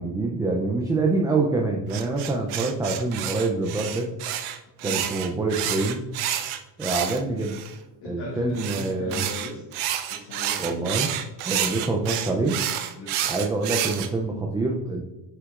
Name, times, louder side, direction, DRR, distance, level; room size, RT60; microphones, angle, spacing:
voice 1, 0.0-4.1 4.8-6.0 6.8-7.6 8.0-9.2 10.6-11.1 11.4-12.6 13.3-15.1, right 3 dB, 10° right, 0 dB, 0.3 m, -26 dB
sound 1, 1.9-7.7 8.6-14.1, right 11 dB, 80° right, 0.8 m, -29 dB
voice 2, 4.8-5.1 8.0-9.6 10.1-10.9 11.5-11.8 13.0-13.5, left 2 dB, 60° left, -6 dB, 2.0 m, -38 dB
7.9 x 5.9 x 2.4 m, 1.0 s
cardioid pair, 135°, 48 cm